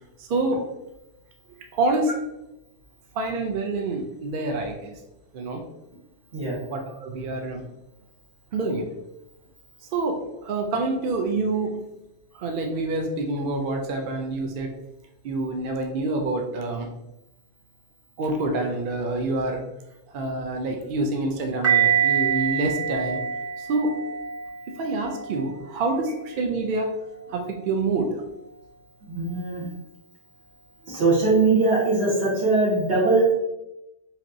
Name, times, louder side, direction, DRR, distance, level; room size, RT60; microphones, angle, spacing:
voice 1, 0.2-0.6 1.7-2.1 3.1-5.0 5.3-5.6 6.7-7.6 8.5-8.9 9.8-11.9 12.3-14.7 15.2-16.9 18.2-19.6 20.1-23.2 23.6-24.0 24.8-26.9 27.3-28.2 30.8-30.9, right 2 dB, 60° right, 3 dB, 0.7 m, -27 dB
sound 1, 21.6-26.6 27.2-27.4, right 8 dB, 20° right, 0.4 m, -26 dB
voice 2, 29.0-29.6 30.9-33.3, right 3 dB, 75° right, -7 dB, 1.6 m, -21 dB
4.3 x 3.0 x 2.6 m, 0.92 s
omnidirectional pair, 1.1 m